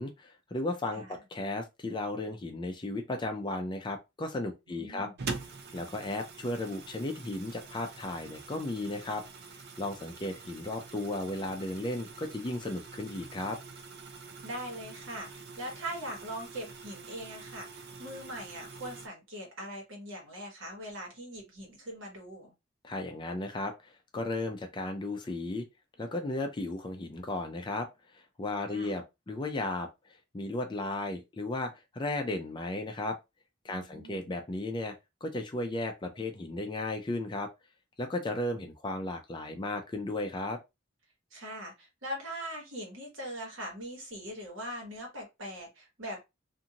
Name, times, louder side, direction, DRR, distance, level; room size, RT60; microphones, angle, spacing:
voice 1, 0.0-5.1 5.7-9.2 9.8-13.6 22.8-25.7 26.0-27.9 28.1-29.9 30.3-33.2 33.6-34.9 35.2-37.5 38.0-40.6, left 2 dB, 20° left, 0.4 m, -35 dB
voice 2, 4.7-5.3 14.4-22.5 28.7-29.0 33.7-34.4 41.3-46.2, equal, 65° right, 1.3 m, -41 dB
sound 1, 5.2-19.1, right 4 dB, 50° right, 0.5 m, -45 dB
2.6 x 2.5 x 2.8 m
head